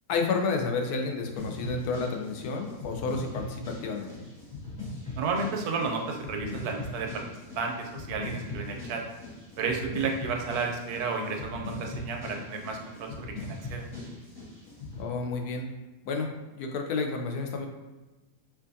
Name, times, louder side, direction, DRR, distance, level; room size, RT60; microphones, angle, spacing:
voice 1, 0.1-4.3 15.0-15.7 16.1-17.7, left 4 dB, 85° left, 3 dB, 1.1 m, -31 dB
sound 1, 1.4-15.1, left 2 dB, 65° left, 2.2 m, -40 dB
voice 2, 5.2-7.2 7.6-9.0 9.6-13.9, right 4 dB, 80° right, 2 dB, 1.1 m, -32 dB
4.6 x 2.5 x 2.6 m, 1.1 s
omnidirectional pair, 1.6 m